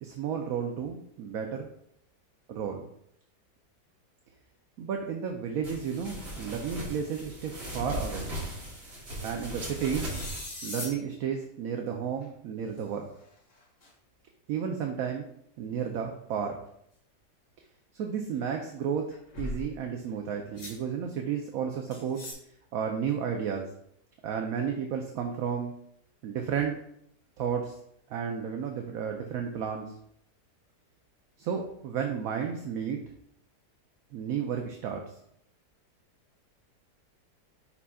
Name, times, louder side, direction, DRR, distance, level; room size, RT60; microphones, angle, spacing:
voice 1, 0.0-1.7 2.5-2.9 4.8-8.3 9.2-10.1 10.6-13.1 14.5-15.3 15.6-16.6 17.9-22.2 22.7-23.7 24.2-25.7 26.2-26.8 27.4-27.8 28.1-30.0 31.4-33.0 34.1-35.0, right 7 dB, 65° right, 3 dB, 1.0 m, -32 dB
sound 1, 5.6-10.4, equal, 40° right, 2.1 m, -38 dB
sound 2, 9.6-11.0 12.2-12.3 12.8-12.9 13.6-13.9 19.1-19.7 20.6-20.8 21.9-22.3, left 2 dB, 60° left, 2.4 m, -39 dB
8.4 x 5.5 x 2.3 m, 0.71 s
omnidirectional pair, 1.7 m